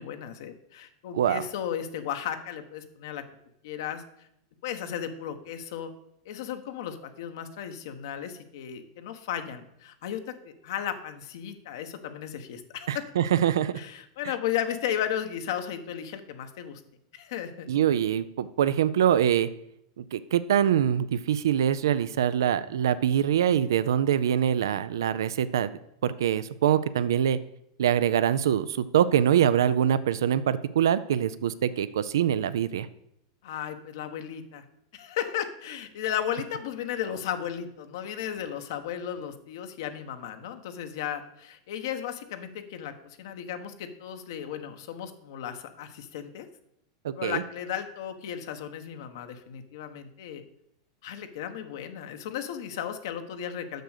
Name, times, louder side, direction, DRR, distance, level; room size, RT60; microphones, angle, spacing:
voice 1, 0.0-3.2 3.6-4.0 4.6-5.9 6.2-13.0 13.8-16.8 17.1-17.7 33.4-34.6 34.9-46.5 47.2-50.4 51.0-53.8, left 9 dB, 70° left, 7 dB, 1.1 m, -35 dB
voice 2, 1.1-1.4 12.9-13.8 17.7-19.5 20.0-27.4 27.8-32.9 47.0-47.4, right 9 dB, 85° right, 15 dB, 0.4 m, -24 dB
6.5 x 6.2 x 6.6 m, 0.77 s
hypercardioid pair, 120°, 2 cm